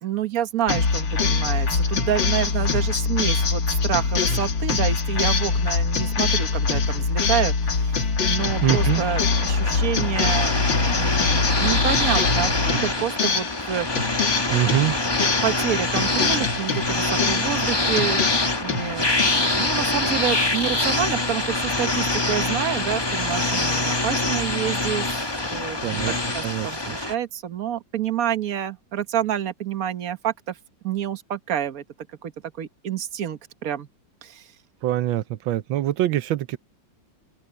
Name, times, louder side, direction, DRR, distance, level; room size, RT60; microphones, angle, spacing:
voice 1, 0.0-10.6 10.9-14.8 15.4-18.3 18.6-30.6 30.8-31.8 32.2-32.3 32.6-33.9 34.2-34.5, right 9 dB, 50° right, 1.6 m, -28 dB
sound 1, 0.7-13.7 14.0-15.6 16.0-17.6 18.0-19.6, left 4 dB, 75° left, 3.0 m, -24 dB
sound 2, 8.4-27.1, left 2 dB, 15° left, 1.2 m, -25 dB
voice 2, 8.6-9.0 14.5-14.9 25.8-26.8 34.8-36.6, right 14 dB, 85° right, 1.5 m, -24 dB
open air
omnidirectional pair, 2.1 m